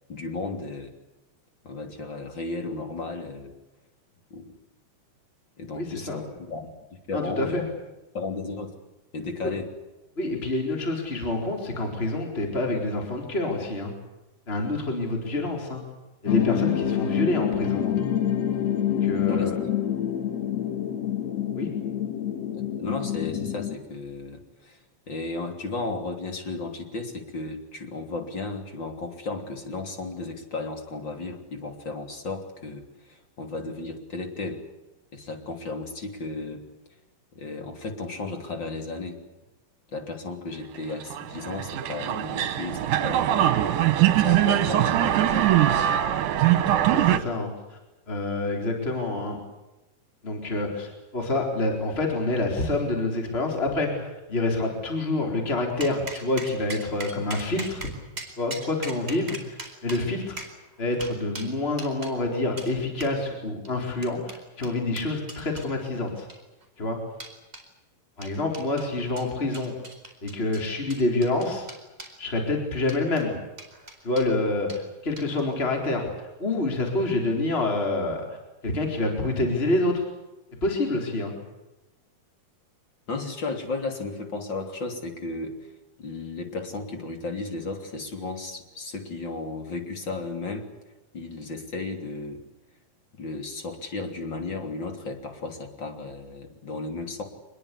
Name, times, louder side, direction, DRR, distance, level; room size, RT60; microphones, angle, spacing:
voice 1, 0.1-0.9 1.6-3.5 4.3-4.5 5.6-6.7 7.1-7.7 8.1-8.7 9.1-9.7 19.3-19.5 22.5-24.8 25.1-34.6 35.1-36.6 37.3-39.2 39.9-43.6 44.2-45.5 83.1-85.7 86.0-90.7 91.1-92.4 93.1-97.2, left 3 dB, 35° left, 5 dB, 3.7 m, -34 dB
voice 2, 5.7-6.2 7.1-7.6 9.4-9.5 10.2-13.9 14.5-15.8 16.2-17.9 18.8-19.6 21.6-21.7 46.9-47.8 48.1-49.4 50.2-57.9 58.4-59.6 59.8-60.5 60.8-66.3 66.8-67.0 68.2-69.7 70.2-71.7 72.2-73.4 74.0-76.1 76.4-78.2 78.6-80.1 80.6-81.3, left 2 dB, 15° left, 2 dB, 4.2 m, -27 dB
sound 1, 16.3-23.8, left 10 dB, 55° left, 3.0 m, -27 dB
sound 2, 40.9-47.2, right 12 dB, 70° right, 2.7 m, -22 dB
sound 3, 55.8-62.2 62.6-62.7 63.0-63.2 63.7-65.7 66.2-66.6 67.2-67.7 68.2-68.9 69.2-72.2 72.8-73.3 73.6-74.3 74.7-74.8 75.2-75.5, right 2 dB, 15° right, 4.3 m, -40 dB
25.0 x 21.5 x 8.5 m, 1.0 s
omnidirectional pair, 3.8 m